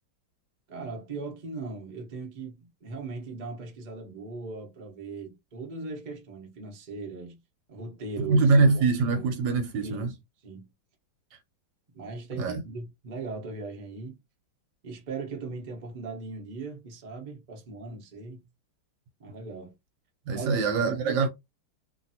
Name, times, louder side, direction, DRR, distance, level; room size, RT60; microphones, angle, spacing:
voice 1, 0.7-7.4 7.7-8.5 9.0-9.3 9.8-10.2 10.4-10.7 11.9-14.2 14.8-18.4 19.2-19.7 20.3-21.3, right 3 dB, 45° right, 0.5 m, -39 dB
voice 2, 8.3-10.1 12.4-12.6 20.3-21.3, right 4 dB, 70° right, 1.3 m, -23 dB
3.1 x 2.6 x 2.7 m
omnidirectional pair, 2.3 m